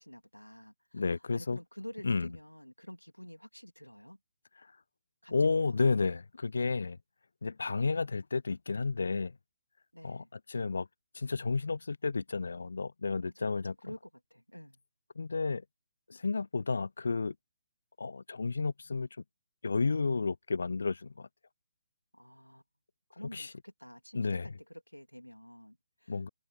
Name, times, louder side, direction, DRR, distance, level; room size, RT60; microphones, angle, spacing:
voice 1, 0.0-4.2 5.2-6.0 9.9-10.3 13.2-14.8 22.1-22.6 23.1-24.4 24.7-26.3, equal, 90° left, 3.2 m, -49 dB
voice 2, 0.9-1.6 2.0-2.3 5.3-7.0 7.4-9.3 10.0-10.9 11.1-13.8 15.2-15.6 16.1-17.3 18.0-19.1 19.6-21.3 23.3-23.5 24.1-24.5 26.1-26.3, left 4 dB, 65° left, 0.3 m, -31 dB
figure-of-eight pair, 135°, 0 cm